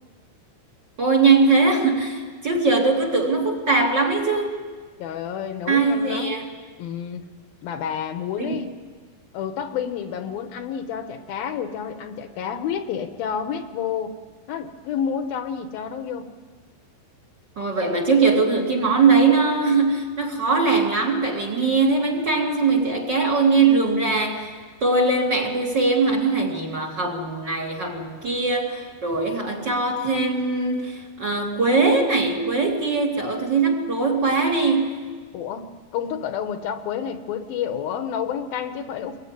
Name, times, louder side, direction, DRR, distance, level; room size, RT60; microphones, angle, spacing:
voice 1, 1.0-4.5 5.7-6.5 8.4-8.6 17.6-24.5 24.8-35.0, right 4 dB, 30° right, 3 dB, 2.8 m, -21 dB
voice 2, 5.0-6.4 6.8-7.3 7.6-8.7 9.3-14.1 14.5-16.3 35.3-35.7 35.9-39.2, left 8 dB, 75° left, 9 dB, 2.9 m, -29 dB
24.5 x 21.5 x 9.6 m, 1.5 s
omnidirectional pair, 4.4 m